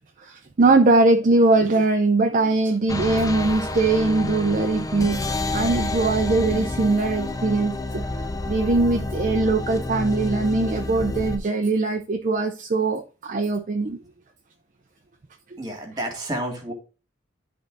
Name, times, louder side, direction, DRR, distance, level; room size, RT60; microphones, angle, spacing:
voice 1, 0.2-8.0 8.5-14.0, right 3 dB, 40° right, 0.5 m, -21 dB
sound 1, 2.9-11.4, left 2 dB, 15° left, 0.6 m, -29 dB
voice 2, 15.6-16.7, right 1 dB, 20° right, 2.0 m, -30 dB
10.5 x 3.8 x 3.8 m
head